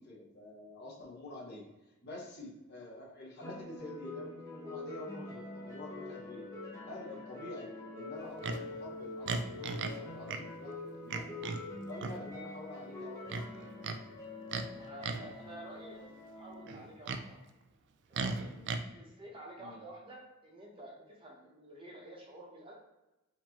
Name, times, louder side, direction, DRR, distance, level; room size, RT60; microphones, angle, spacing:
voice 1, 0.0-1.6 2.0-6.5 6.9-11.5 11.8-13.7 18.5-18.7 19.6-19.8, left 2 dB, 50° left, -5 dB, 1.3 m, -48 dB
sound 1, 3.4-16.7, left 2 dB, 15° left, 0.8 m, -45 dB
Livestock farm animals working animals, 8.4-8.6 9.3-10.0 10.3-10.4 11.1-11.6 12.0-12.2 13.3-14.0 14.5-14.7 15.0-15.3 16.7-17.2 18.1-18.8, right 4 dB, 55° right, 0.3 m, -36 dB
voice 2, 14.7-17.4 18.1-18.4 18.9-22.7, right 1 dB, 25° right, -3 dB, 0.9 m, -50 dB
4.4 x 2.8 x 2.9 m, 1.0 s
head